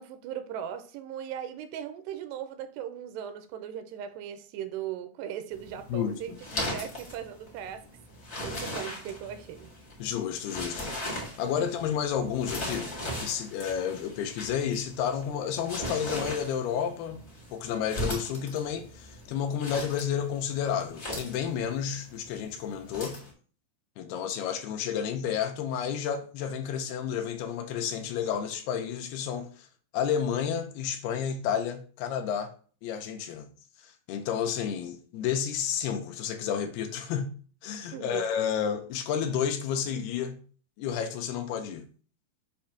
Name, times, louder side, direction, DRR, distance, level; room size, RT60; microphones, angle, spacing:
voice 1, 0.0-6.4 6.7-7.8 8.4-9.7 37.9-38.2, right 9 dB, 85° right, 2.7 m, -38 dB
sound 1, 5.5-23.3, left 1 dB, 55° left, 0.7 m, -39 dB
voice 2, 5.9-6.4 10.0-10.8 11.4-12.9 13.2-17.2 17.5-23.2 24.0-29.7 29.9-32.5 32.8-33.5 33.8-37.3 37.6-40.4 40.8-41.9, left 8 dB, 80° left, 2.5 m, -31 dB
7.2 x 2.6 x 5.7 m
omnidirectional pair, 4.7 m